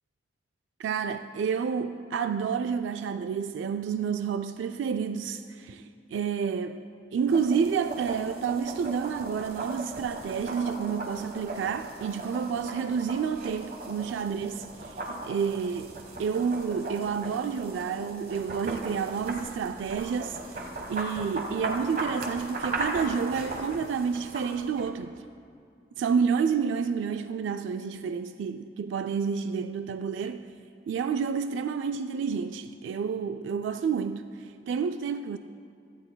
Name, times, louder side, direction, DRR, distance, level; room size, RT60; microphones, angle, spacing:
voice 1, 0.8-6.8 7.1-15.9 16.2-20.4 20.9-25.2 26.0-30.5 30.9-35.4, right 6 dB, 85° right, 0.3 m, -29 dB
sound 1, 7.3-24.9, right 2 dB, 50° right, 1.3 m, -38 dB
17.0 x 13.5 x 2.2 m
head